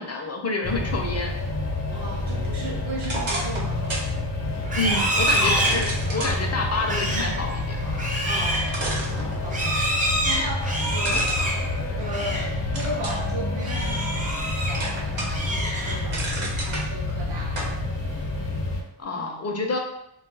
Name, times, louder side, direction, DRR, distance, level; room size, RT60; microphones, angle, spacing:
voice 1, 0.0-1.3 4.7-7.8 19.0-19.8, left 3 dB, 35° left, 1 dB, 0.5 m, -28 dB
sound 1, 0.6-18.8, left 2 dB, 65° left, 0.8 m, -29 dB
voice 2, 1.9-4.2 8.2-8.9 9.4-9.8 10.2-11.4 12.0-15.5 15.9-17.8 19.1-19.5, right 1 dB, 60° right, -1 dB, 0.8 m, -36 dB
sound 2, 3.0-4.1 4.5-4.6 5.5-6.4 8.2-8.3 8.7-9.8 11.0-12.3 12.7-13.3 13.8-14.5 14.7-15.5 15.8-16.8 17.6-17.7, right 2 dB, 85° right, 0.9 m, -31 dB
Livestock farm animals working animals, 4.6-12.5 12.9-13.2 13.6-14.9 15.2-16.2, right 1 dB, 20° right, 0.5 m, -27 dB
2.4 x 2.2 x 3.9 m, 0.80 s
wide cardioid pair, 100°, 46 cm